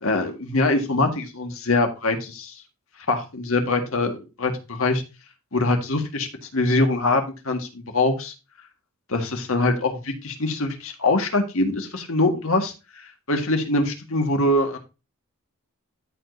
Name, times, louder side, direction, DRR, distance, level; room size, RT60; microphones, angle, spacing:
voice 1, 0.0-2.6 3.1-5.0 5.5-8.3 9.1-14.8, left 2 dB, 65° left, 4 dB, 1.7 m, -23 dB
13.5 x 5.0 x 2.7 m, 0.29 s
head